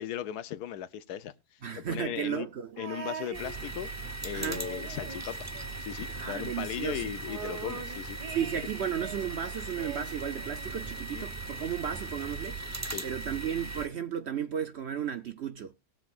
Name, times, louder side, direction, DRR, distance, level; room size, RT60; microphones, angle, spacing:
voice 1, 0.0-1.3 1.8-2.5 2.8-3.9 4.2-5.5 5.8-8.2 11.1-11.2 12.9-13.0, left 11 dB, 75° left, 1.3 m, -37 dB
voice 2, 1.6-2.8 4.3-4.6 6.2-7.1 8.3-12.6 13.0-15.7, right 8 dB, 55° right, 0.8 m, -34 dB
sound 1, 2.8-4.1 4.4-6.3 6.6-6.7 6.9-9.3 9.8-11.0 11.9-12.0, right 6 dB, 80° right, 1.8 m, -43 dB
sound 2, 3.3-13.9, right 3 dB, 15° right, 0.5 m, -39 dB
20.0 x 7.4 x 2.4 m
omnidirectional pair, 1.7 m